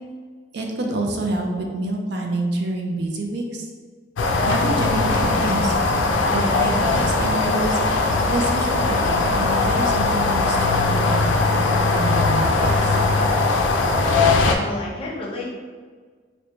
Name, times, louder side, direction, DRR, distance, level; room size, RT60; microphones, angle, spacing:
voice 1, 0.5-3.7 4.4-5.7 6.3-13.0, right 1 dB, 60° right, 1 dB, 0.4 m, -27 dB
sound 1, 4.2-14.6, left 3 dB, 85° left, 0.4 m, -20 dB
voice 2, 14.6-15.5, left 2 dB, 30° left, -4 dB, 0.7 m, -31 dB
4.4 x 2.1 x 2.6 m, 1.5 s
head